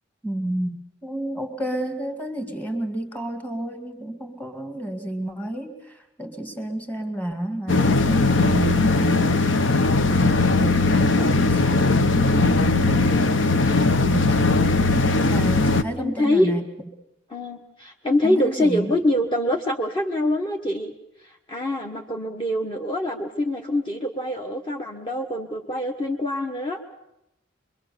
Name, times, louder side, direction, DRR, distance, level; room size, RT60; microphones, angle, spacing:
voice 1, 0.2-9.5 9.8-13.2 14.0-14.5 15.3-16.7 18.2-18.9, right 1 dB, 10° left, 7 dB, 2.1 m, -30 dB
sound 1, 7.7-15.8, left 3 dB, 80° left, 1.0 m, -19 dB
voice 2, 16.0-16.5 17.3-20.9 21.2-26.8, left 1 dB, 25° left, 2 dB, 1.3 m, -25 dB
25.5 x 22.5 x 6.8 m, 0.85 s
head